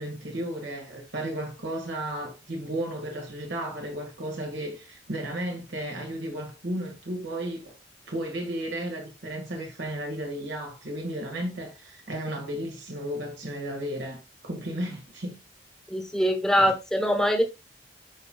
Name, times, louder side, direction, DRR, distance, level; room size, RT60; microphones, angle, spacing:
voice 1, 0.0-7.7 8.1-15.4, right 1 dB, 85° right, 1.7 m, -34 dB
voice 2, 15.9-17.4, equal, 5° left, 1.0 m, -23 dB
10.5 x 4.5 x 2.3 m
head